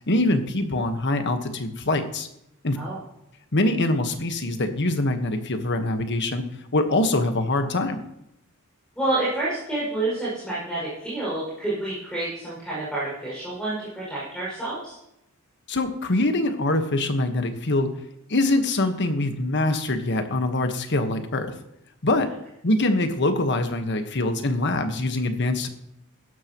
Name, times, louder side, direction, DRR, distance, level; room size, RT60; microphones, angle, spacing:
voice 1, 0.1-2.3 2.6-2.8 3.5-6.4 6.7-8.0 15.7-17.9 18.3-21.5 22.0-22.3 22.6-25.7, left 2 dB, 55° left, 7 dB, 1.3 m, -24 dB
voice 2, 9.0-14.9, right 2 dB, 5° left, -8 dB, 6.0 m, -28 dB
16.0 x 12.5 x 3.1 m, 0.82 s
head